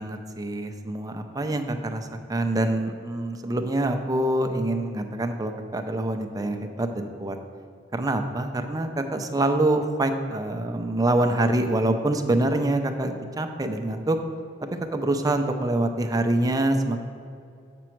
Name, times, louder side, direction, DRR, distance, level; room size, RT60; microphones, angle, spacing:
voice 1, 0.0-7.4 7.9-14.2 14.9-17.0, right 1 dB, 20° right, 6 dB, 0.5 m, -25 dB
7.3 x 6.1 x 4.5 m, 2.4 s
head